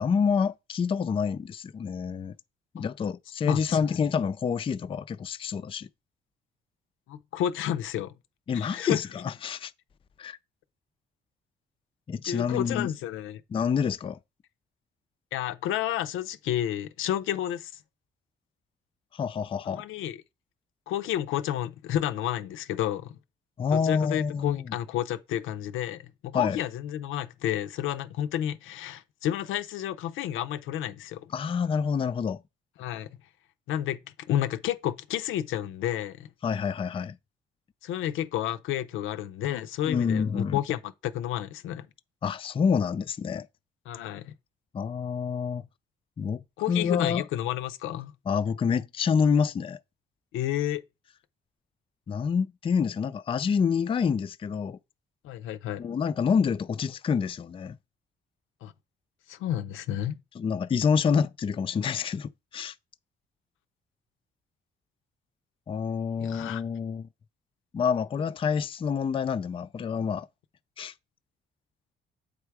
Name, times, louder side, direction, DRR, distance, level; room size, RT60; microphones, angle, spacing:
voice 1, 0.0-2.3 2.7-5.9 8.5-9.7 10.2-10.4 12.1-12.9 13.5-14.2 19.1-19.8 23.6-24.8 26.3-26.6 31.3-32.4 36.4-37.2 39.9-40.6 42.2-43.5 44.7-45.6 46.2-46.4 46.7-47.2 48.3-49.8 52.1-54.8 55.8-57.8 60.4-62.7 65.7-67.1 67.7-70.3 70.8-70.9, left 6 dB, 25° left, 0.3 m, -27 dB
voice 2, 3.4-4.0 7.1-8.1 8.5-9.0 12.3-13.4 15.3-17.8 19.7-20.2 20.9-23.2 23.7-31.3 32.8-33.1 33.7-34.0 34.3-36.3 37.8-41.9 43.9-44.3 46.6-48.1 50.3-50.8 55.2-55.9 58.6-58.7 59.3-60.2 66.2-66.6, left 11 dB, 85° left, 0.5 m, -31 dB
8.0 x 3.4 x 4.7 m
cardioid pair, 90°, 20 cm